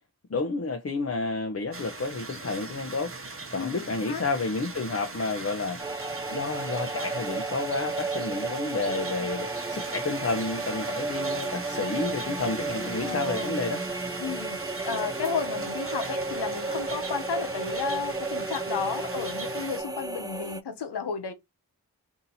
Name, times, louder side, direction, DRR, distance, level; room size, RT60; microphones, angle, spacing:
voice 1, 0.3-3.1 3.5-13.8, left 3 dB, 40° left, 0.7 m, -31 dB
sound 1, 1.7-19.8, right 3 dB, 35° right, 1.0 m, -39 dB
voice 2, 3.5-4.2 13.0-13.5 14.2-21.3, left 6 dB, 85° left, 0.9 m, -33 dB
sound 2, 5.8-20.6, right 3 dB, 10° right, 0.4 m, -33 dB
2.8 x 2.8 x 3.9 m
cardioid pair, 45°, 39 cm